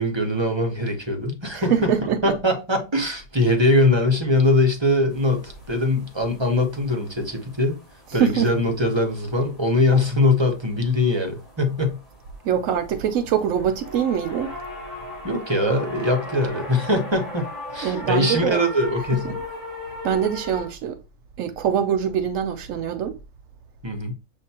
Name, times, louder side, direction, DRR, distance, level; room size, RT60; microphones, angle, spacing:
voice 1, 0.0-1.9 2.2-7.8 8.1-12.0 15.2-17.5 17.7-19.4 23.8-24.1, left 2 dB, 25° right, 1.0 m, -22 dB
voice 2, 1.5-2.3 8.2-8.5 12.4-14.5 17.8-18.6 19.3-19.4 20.0-21.0 21.4-23.2, right 8 dB, 85° right, 1.0 m, -23 dB
sound 1, 5.1-20.7, left 1 dB, 40° left, 2.9 m, -38 dB
6.9 x 2.7 x 2.8 m
omnidirectional pair, 1.3 m